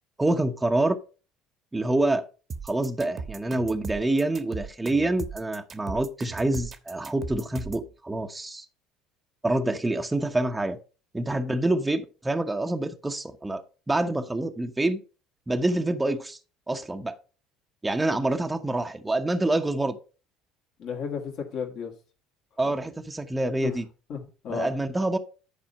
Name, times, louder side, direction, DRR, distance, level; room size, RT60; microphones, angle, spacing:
voice 1, 0.2-1.0 1.7-2.2 2.6-8.6 9.4-10.8 11.1-13.6 13.9-15.0 15.5-16.4 16.7-17.1 17.8-20.0 22.6-23.9 24.5-25.2, right 2 dB, 15° right, 1.0 m, -26 dB
sound 1, 2.5-7.9, right 5 dB, 40° right, 1.2 m, -37 dB
voice 2, 20.8-21.9 22.6-22.7 23.6-23.7 24.1-24.7, left 7 dB, 55° left, 2.2 m, -34 dB
10.5 x 4.3 x 5.5 m
hypercardioid pair, 65°, 0 cm